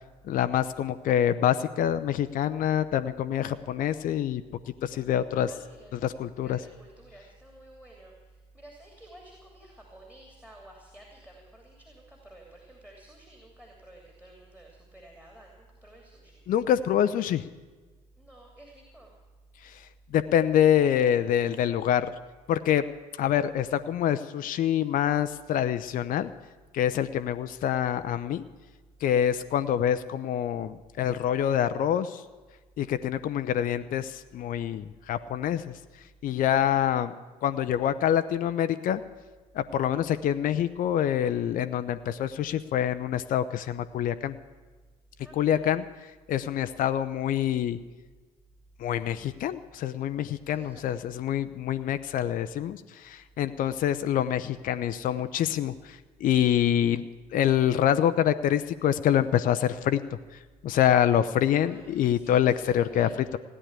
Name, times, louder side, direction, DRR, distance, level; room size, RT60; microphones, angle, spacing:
voice 1, 0.3-4.4 4.8-5.5 5.9-6.6 16.5-17.4 20.1-22.1 22.5-22.8 23.2-26.3 26.7-28.4 29.0-32.2 32.8-35.7 36.2-37.1 37.4-39.0 39.5-44.3 45.4-45.9 46.3-47.8 48.8-57.0 57.3-60.0 60.6-63.4, left 10 dB, 45° left, 11 dB, 0.6 m, -26 dB
voice 2, 5.4-6.0 6.4-16.4 18.2-19.1 36.5-36.8 45.2-45.7 50.5-51.0 61.6-63.2, right 1 dB, 5° right, 1 dB, 2.9 m, -52 dB
16.0 x 9.9 x 8.1 m, 1.3 s
figure-of-eight pair, 50°, 20 cm